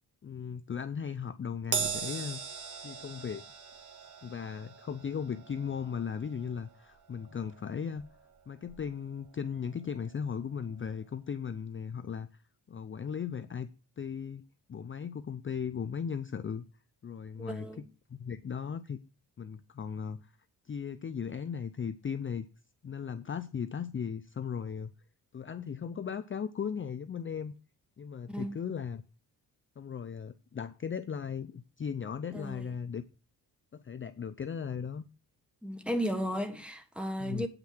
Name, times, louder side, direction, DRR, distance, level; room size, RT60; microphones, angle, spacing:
voice 1, 0.2-2.4 2.8-3.4 4.2-8.1 8.5-12.3 12.7-13.7 14.0-14.4 14.7-16.7 17.0-19.0 19.4-20.3 20.6-22.5 22.8-24.9 25.3-27.5 28.0-29.0 29.8-33.0 33.7-35.0 37.2-37.5, left 7 dB, 30° left, 0.6 m, -37 dB
Crash cymbal, 1.7-8.3 8.7-8.9 9.9-10.0, right 6 dB, 45° right, 2.0 m, -40 dB
voice 2, 17.4-17.8 28.3-28.6 32.3-32.7 35.6-37.5, equal, 5° right, 1.5 m, -34 dB
8.9 x 6.0 x 6.5 m
cardioid pair, 105°, 40 cm